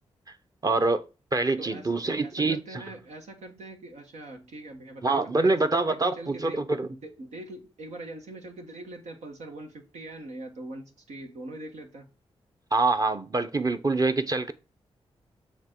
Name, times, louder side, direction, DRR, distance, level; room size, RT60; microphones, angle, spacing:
voice 1, 0.6-1.1 1.3-2.8 5.0-6.9 12.7-14.5, right 3 dB, 35° right, 0.9 m, -25 dB
voice 2, 1.6-12.1, right 2 dB, 85° right, 1.4 m, -43 dB
7.3 x 3.3 x 4.5 m
cardioid pair, 50°, 11 cm